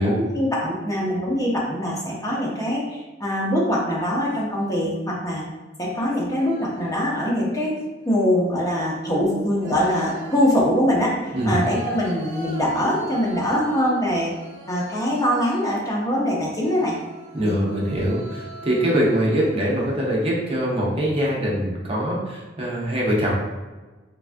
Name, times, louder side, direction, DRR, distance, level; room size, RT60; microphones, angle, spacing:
voice 1, 0.0-5.4 5.8-7.8 8.1-14.3 14.7-17.0 17.4-17.6, equal, 20° left, -4 dB, 0.5 m, -23 dB
sound 1, 4.4-4.9 5.9-7.1 7.5-8.1 9.1-16.0 16.6-20.9, equal, 85° right, 0.4 m, -42 dB
voice 2, 17.3-23.4, equal, 30° right, -4 dB, 0.6 m, -23 dB
3.2 x 2.3 x 2.5 m, 1.2 s
head